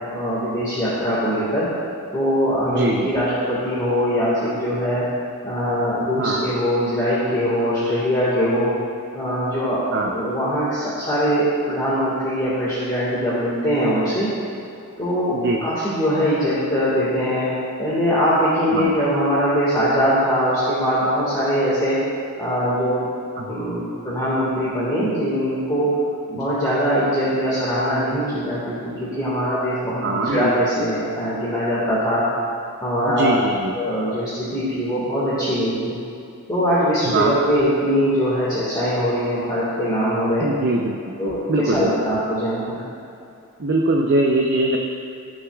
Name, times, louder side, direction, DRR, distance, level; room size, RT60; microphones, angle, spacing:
voice 1, 0.0-1.7 2.1-5.0 5.4-8.7 9.1-14.3 15.0-17.5 17.8-22.0 22.4-23.1 23.5-25.9 26.3-32.2 32.8-33.3 33.7-35.9 36.5-40.5 41.2-42.8, equal, 20° left, -10 dB, 1.8 m, -22 dB
voice 2, 2.7-3.1 6.2-6.5 9.9-10.1 15.3-15.6 18.7-19.0 23.4-23.5 26.3-26.5 30.0-30.5 33.2-33.7 37.1-37.3 40.4-41.0 41.5-41.9 43.6-44.8, right 2 dB, 50° right, 0 dB, 0.6 m, -21 dB
18.5 x 6.4 x 2.4 m, 2.7 s
head